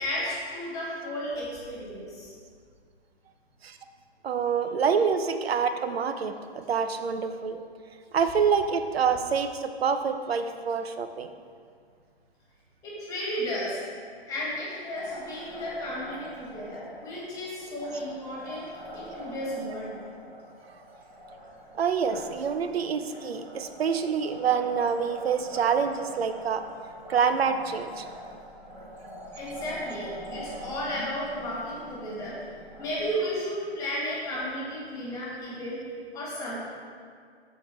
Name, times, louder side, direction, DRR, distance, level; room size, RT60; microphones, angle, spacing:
voice 1, 0.0-2.3 12.8-13.8 14.3-18.7 18.9-20.0 29.3-32.4 32.8-35.8 36.1-36.6, equal, 10° left, -6 dB, 1.8 m, -33 dB
voice 2, 4.2-7.6 8.1-11.3 21.8-26.6 27.1-28.1, right 6 dB, 65° right, 9 dB, 0.8 m, -26 dB
Liquid, 14.9-34.4, equal, 5° right, 1.0 m, -44 dB
13.5 x 4.7 x 4.4 m, 2.1 s
hypercardioid pair, 170°, 32 cm